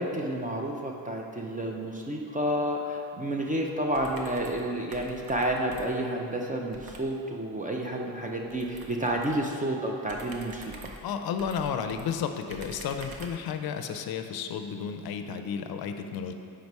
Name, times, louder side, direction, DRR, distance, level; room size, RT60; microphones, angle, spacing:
voice 1, 0.0-10.7, right 1 dB, 20° right, 1 dB, 0.4 m, -30 dB
sound 1, 3.9-4.7 4.9-6.1 6.7-7.1 8.5-9.4 10.0-12.0 12.5-13.5, right 2 dB, 55° right, 0.8 m, -46 dB
voice 2, 11.0-16.3, left 7 dB, 60° left, 7 dB, 0.5 m, -32 dB
5.0 x 4.6 x 5.3 m, 2.5 s
cardioid pair, 130°, 42 cm